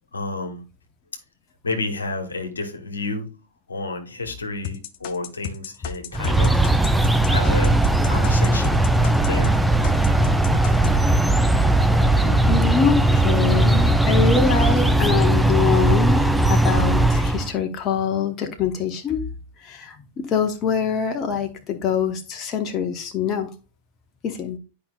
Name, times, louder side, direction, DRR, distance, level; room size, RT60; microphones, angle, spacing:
voice 1, 0.1-0.6 1.6-3.3 3.7-6.7 7.3-7.7 8.0-8.8 9.3-9.5, left 3 dB, 75° left, 1.3 m, -30 dB
sound 1, 4.6-9.6 9.8-11.0, left 9 dB, 50° left, 0.7 m, -33 dB
sound 2, 6.1-17.5, right 1 dB, ahead, 0.5 m, -18 dB
voice 2, 12.2-16.2 16.5-19.2 19.6-23.5 24.2-24.6, left 6 dB, 30° left, 1.0 m, -24 dB
10.5 x 5.2 x 2.4 m
figure-of-eight pair, 90°, 0 cm